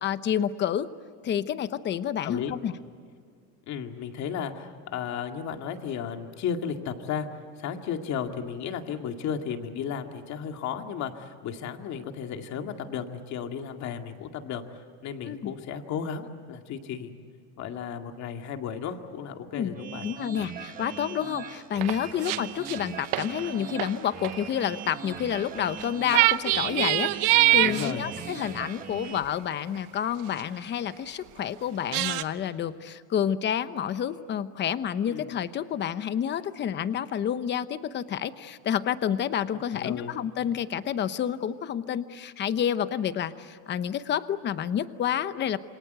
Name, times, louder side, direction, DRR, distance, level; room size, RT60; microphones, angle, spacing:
voice 1, 0.0-0.9 1.2-2.7 15.2-15.5 19.5-19.7 20.0-45.6, left 9 dB, 25° left, 12 dB, 0.9 m, -29 dB
voice 2, 2.2-2.5 3.7-17.1 17.6-20.1 27.6-28.0 35.1-35.3 39.7-40.1, left 7 dB, 45° left, 5 dB, 2.2 m, -34 dB
sound 1, 19.7-29.2, right 6 dB, 20° right, 1.5 m, -40 dB
sound 2, 21.7-22.4 22.6-24.8 25.8-25.9 26.1-28.2 29.1-29.2 30.4-30.5 31.9-32.2, right 17 dB, 55° right, 1.0 m, -24 dB
28.0 x 26.0 x 8.1 m, 2.1 s
cardioid pair, 165°, 39 cm